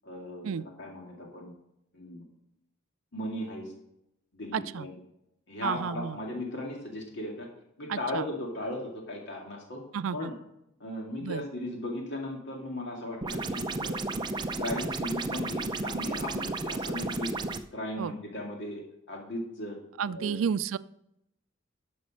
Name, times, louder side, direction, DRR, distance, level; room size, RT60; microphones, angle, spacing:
voice 1, 0.0-0.5 0.8-1.5 1.9-2.2 3.1-3.7 4.3-5.0 5.5-7.5 7.8-9.8 10.1-10.3 10.8-14.0 14.6-17.3 17.7-19.8 20.1-20.4, left 1 dB, 60° left, 0 dB, 2.1 m, -37 dB
voice 2, 4.5-4.9 5.6-6.2 7.9-8.2 9.9-10.3 11.2-11.4 18.0-18.1 20.0-20.8, right 7 dB, 85° right, 17 dB, 0.4 m, -31 dB
sound 1, 13.2-17.6, right 2 dB, 20° right, 0.5 m, -33 dB
11.5 x 6.2 x 6.2 m, 0.79 s
head